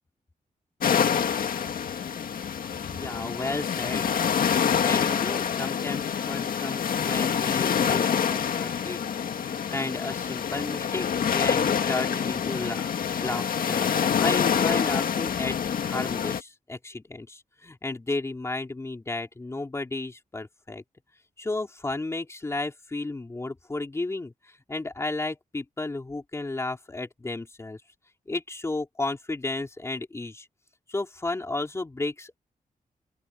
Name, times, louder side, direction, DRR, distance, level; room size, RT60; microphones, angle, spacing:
sound 1, 0.8-16.4, left 7 dB, 80° left, 1.9 m, -26 dB
voice 1, 2.9-4.1 4.8-9.0 9.4-13.9 14.2-15.6 15.8-20.8 21.4-27.8 28.3-30.5 30.9-32.4, left 2 dB, 20° left, 3.5 m, -33 dB
open air
wide cardioid pair, 175°, 14 cm